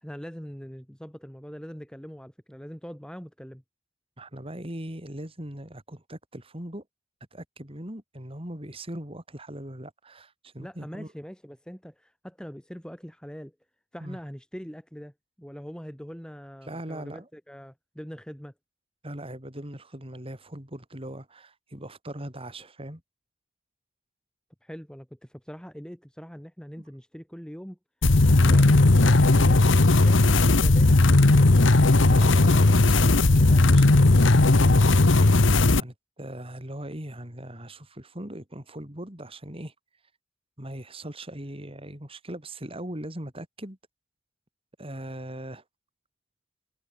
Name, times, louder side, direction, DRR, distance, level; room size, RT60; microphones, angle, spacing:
voice 1, 0.0-3.6 10.6-13.6 13.9-18.5 24.6-27.8 28.3-31.0, equal, 5° left, 4.0 m, -42 dB
voice 2, 4.2-6.8 7.3-11.1 14.0-14.2 16.6-17.3 19.0-23.0 32.0-35.1 35.8-39.7 40.6-43.8 44.8-45.6, right 1 dB, 30° right, 4.2 m, -40 dB
sound 1, 28.0-35.8, left 2 dB, 80° left, 1.2 m, -17 dB
head